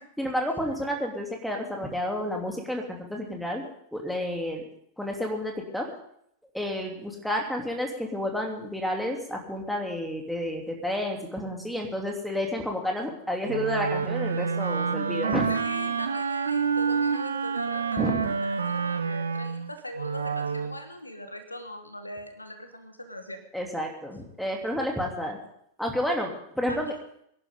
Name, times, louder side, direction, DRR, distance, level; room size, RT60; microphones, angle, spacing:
voice 1, 0.2-3.6 3.9-4.6 5.0-5.9 6.5-15.5 18.0-18.3 23.5-25.4 25.8-26.9, left 1 dB, ahead, 1 dB, 3.0 m, -30 dB
Wind instrument woodwind instrument, 13.5-20.8, right 6 dB, 70° right, 0.8 m, -28 dB
voice 2, 15.2-23.4 26.7-27.0, left 1 dB, 85° left, 8 dB, 1.4 m, -40 dB
24.0 x 11.0 x 3.8 m, 0.70 s
figure-of-eight pair, 90°, 0 cm